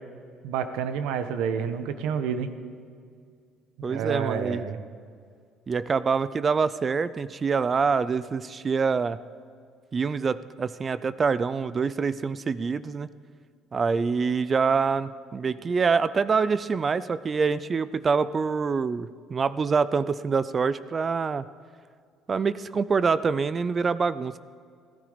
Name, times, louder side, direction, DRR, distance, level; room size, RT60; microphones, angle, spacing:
voice 1, 0.4-2.5 3.8-4.8, right 7 dB, 90° right, 9 dB, 1.1 m, -29 dB
voice 2, 3.8-4.6 5.7-9.2 9.9-13.1 13.7-21.4 22.3-24.4, right 5 dB, 25° right, 16 dB, 0.4 m, -25 dB
16.0 x 14.5 x 5.1 m, 2.1 s
cardioid pair, 155°, 0 cm